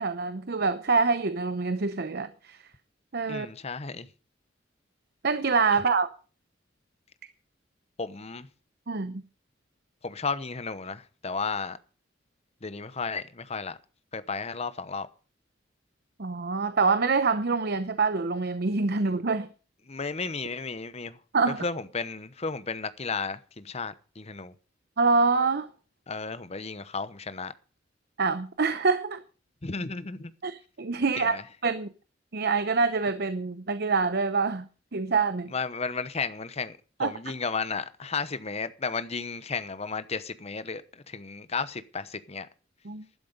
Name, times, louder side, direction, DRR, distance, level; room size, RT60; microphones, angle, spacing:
voice 1, 0.0-2.6 3.1-3.5 5.2-6.1 8.9-9.2 16.2-19.5 21.3-21.6 25.0-25.7 28.2-29.2 30.4-31.4 31.6-31.9 32.3-34.7 34.9-35.5 37.0-37.1 42.8-43.0, right 4 dB, 55° right, 0.8 m, -25 dB
voice 2, 3.3-4.1 8.0-8.5 10.0-11.8 12.6-13.8 14.1-15.1 19.9-21.2 21.6-24.5 26.1-27.5 29.6-30.3 31.2-31.4 35.5-42.5, left 4 dB, 35° left, 0.9 m, -33 dB
12.0 x 11.5 x 5.1 m
head